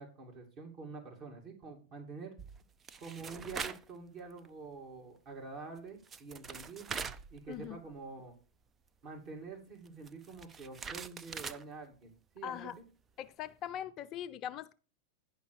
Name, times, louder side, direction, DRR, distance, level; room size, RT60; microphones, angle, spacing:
voice 1, 0.0-2.3 3.0-7.0 7.3-8.3 9.0-12.8, right 4 dB, 45° right, 2.5 m, -47 dB
sound 1, 2.4-3.9 4.3-4.5 5.7-5.8 6.0-7.9 8.2-8.3 9.8-11.6, right 6 dB, 25° right, 0.5 m, -43 dB
voice 2, 7.5-7.8 12.4-12.7 13.2-14.7, left 10 dB, 40° left, 0.6 m, -41 dB
10.0 x 5.4 x 4.8 m
hypercardioid pair, 100°, 0 cm